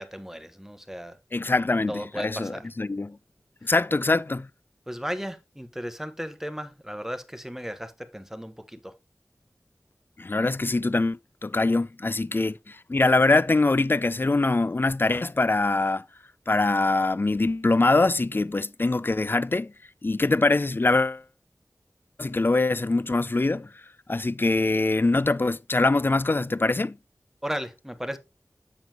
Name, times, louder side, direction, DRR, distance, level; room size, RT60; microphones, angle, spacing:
voice 1, 0.0-1.2 1.9-2.7 4.9-8.9 12.3-12.4 27.4-28.2, equal, 5° right, 1.0 m, -35 dB
voice 2, 1.3-3.2 3.6-4.5 10.2-16.0 16.5-19.7 20.0-21.2 22.2-23.7 24.1-27.0, left 2 dB, 40° left, 0.4 m, -23 dB
7.2 x 6.0 x 2.9 m
wide cardioid pair, 40°, 6 cm